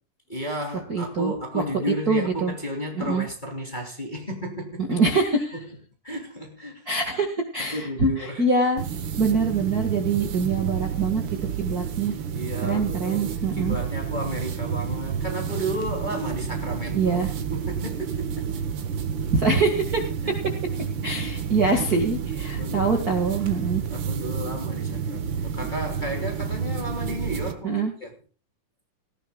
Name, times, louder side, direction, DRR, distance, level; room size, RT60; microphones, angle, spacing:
voice 1, 0.3-4.8 5.5-5.6 6.0-6.9 7.6-8.4 12.3-18.5 20.2-20.4 22.6-23.2 23.9-27.7 28.0-28.1, equal, 15° left, 3.0 m, -33 dB
voice 2, 0.9-2.5 3.0-3.3 4.9-5.6 6.9-8.8 9.2-11.2 11.6-12.1 12.6-13.8 16.9-17.3 19.3-20.0 21.0-23.8 27.6-27.9, right 3 dB, 35° right, 2.0 m, -24 dB
sound 1, 8.8-27.5, right 7 dB, 55° right, 1.4 m, -30 dB
18.5 x 15.0 x 2.4 m
omnidirectional pair, 3.6 m